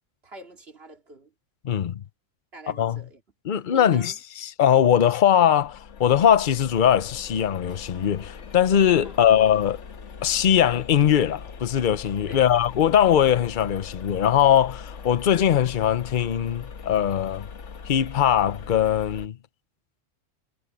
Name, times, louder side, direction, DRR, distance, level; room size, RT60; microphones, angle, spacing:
voice 1, 0.2-1.3 2.5-3.2 3.5-4.2 9.0-9.2 12.3-12.4, right 2 dB, 55° right, 2.7 m, -45 dB
voice 2, 1.6-2.0 2.7-3.0 3.4-9.8 10.2-17.5 17.9-19.4, left 9 dB, 45° left, 0.8 m, -21 dB
sound 1, 5.5-19.3, left 6 dB, 70° left, 1.5 m, -41 dB
omnidirectional pair, 1.3 m